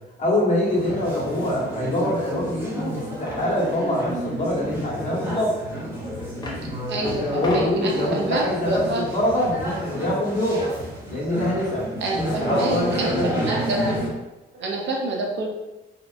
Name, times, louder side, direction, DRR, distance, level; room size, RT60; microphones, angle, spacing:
voice 1, 0.2-5.5 7.3-10.7 11.1-11.9 12.1-13.6, left 1 dB, 40° left, -5 dB, 1.1 m, -24 dB
sound 1, 0.6-14.1, equal, 10° right, 0.9 m, -31 dB
sound 2, 2.6-2.7 3.3-3.6 5.5-5.6 6.2-6.6 7.0-7.8, left 1 dB, 20° left, 0.7 m, -35 dB
voice 2, 6.9-9.1 12.0-14.1 14.5-15.5, right 2 dB, 65° right, 0 dB, 0.6 m, -27 dB
2.8 x 2.4 x 2.4 m, 1.1 s
cardioid pair, 90°, 20 cm